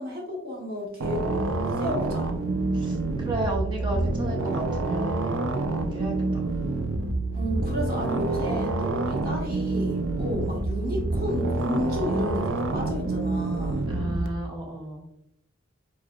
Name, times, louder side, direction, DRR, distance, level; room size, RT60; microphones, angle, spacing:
voice 1, 0.0-2.4 7.3-13.9, equal, 50° right, -2 dB, 1.2 m, -32 dB
sound 1, 1.0-14.3, right 2 dB, 70° right, 0.5 m, -27 dB
voice 2, 2.7-6.5 13.9-15.0, right 2 dB, 25° right, -1 dB, 0.6 m, -33 dB
4.6 x 4.5 x 2.2 m, 0.81 s
head